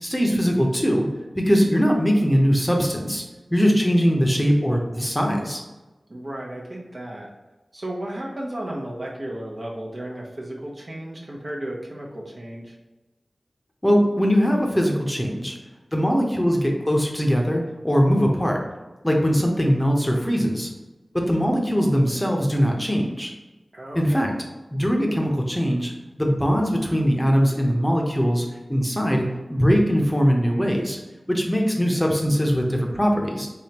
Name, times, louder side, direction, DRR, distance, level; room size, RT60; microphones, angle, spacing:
voice 1, 0.0-1.1 1.4-3.2 3.5-5.6 13.8-15.5 15.9-18.6 19.0-20.7 21.1-23.3 23.9-24.3 24.7-25.9 26.2-29.2 29.5-31.0 31.3-33.5, equal, 10° left, 0 dB, 0.7 m, -21 dB
voice 2, 6.1-7.3 7.7-12.7 23.7-24.3, right 1 dB, 55° right, -2 dB, 0.9 m, -34 dB
3.5 x 3.4 x 2.9 m, 1.1 s
cardioid pair, 40°, 0 cm